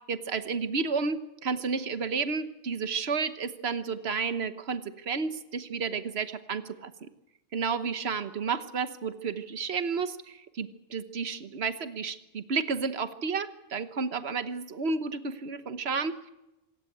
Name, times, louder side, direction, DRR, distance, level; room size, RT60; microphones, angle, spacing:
voice 1, 0.1-7.1 7.5-16.3, right 5 dB, 80° right, 11 dB, 1.4 m, -31 dB
26.0 x 14.5 x 9.2 m, 0.93 s
omnidirectional pair, 1.1 m